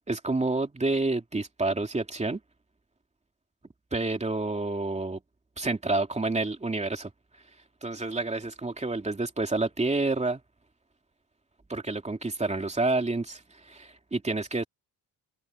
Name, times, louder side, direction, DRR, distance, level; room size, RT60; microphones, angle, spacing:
voice 1, 0.1-2.4 3.9-5.2 5.6-7.1 7.8-10.4 11.7-13.4 13.7-14.6, right 2 dB, 15° right, 2.9 m, -28 dB
open air
cardioid pair, 140°, 40 cm